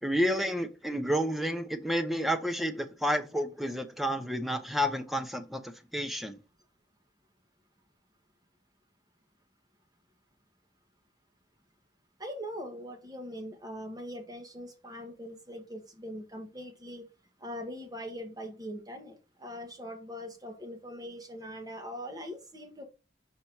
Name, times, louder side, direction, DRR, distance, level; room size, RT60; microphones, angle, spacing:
voice 1, 0.0-6.4, equal, ahead, 0.8 m, -30 dB
voice 2, 12.2-17.0 17.4-22.9, equal, 25° right, 1.5 m, -41 dB
5.7 x 4.2 x 4.6 m
head